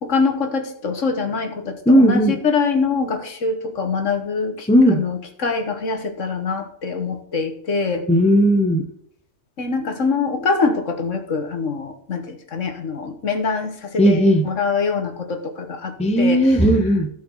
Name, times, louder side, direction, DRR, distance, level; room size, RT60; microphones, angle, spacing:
voice 1, 0.0-8.0 9.6-16.5, left 4 dB, 55° left, 6 dB, 1.5 m, -24 dB
voice 2, 1.9-2.4 4.7-5.0 8.1-8.9 14.0-14.5 16.0-17.1, equal, 10° left, 5 dB, 0.4 m, -15 dB
15.5 x 5.3 x 3.9 m, 0.69 s
omnidirectional pair, 1.7 m